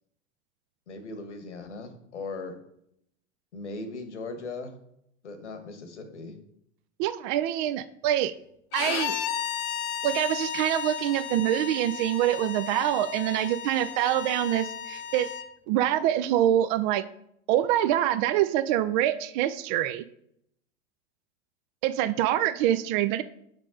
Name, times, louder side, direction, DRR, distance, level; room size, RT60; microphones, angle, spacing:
voice 1, 0.9-2.5 3.5-4.8 5.2-6.4, left 3 dB, 80° left, 8 dB, 1.2 m, -38 dB
voice 2, 7.0-8.3 8.7-9.2 10.0-15.3 15.7-17.0 17.5-20.1 21.8-23.2, right 12 dB, 45° right, 13 dB, 0.4 m, -25 dB
Bowed string instrument, 8.7-15.5, left 9 dB, 50° left, 0.7 m, -34 dB
6.6 x 5.0 x 3.7 m, 0.74 s
figure-of-eight pair, 90°, 35 cm